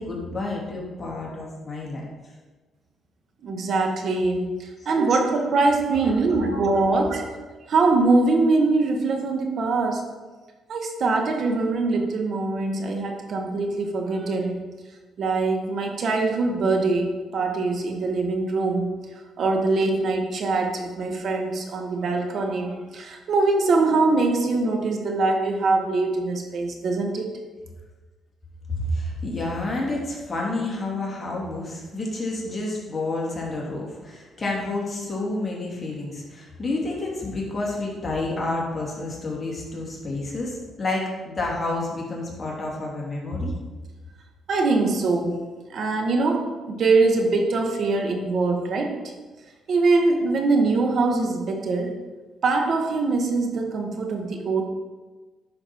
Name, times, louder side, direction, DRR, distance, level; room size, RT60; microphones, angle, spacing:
voice 1, 0.0-2.0 4.8-4.9 28.7-43.5, left 2 dB, 30° left, -3 dB, 2.9 m, -29 dB
voice 2, 3.4-7.2 7.7-10.0 10.7-14.6 15.2-18.9 19.4-27.4 44.5-45.4 45.7-48.9 49.7-52.0 52.4-54.6, right 3 dB, 60° right, 3 dB, 1.3 m, -23 dB
9.7 x 6.4 x 4.5 m, 1.3 s
cardioid pair, 90°, 0 cm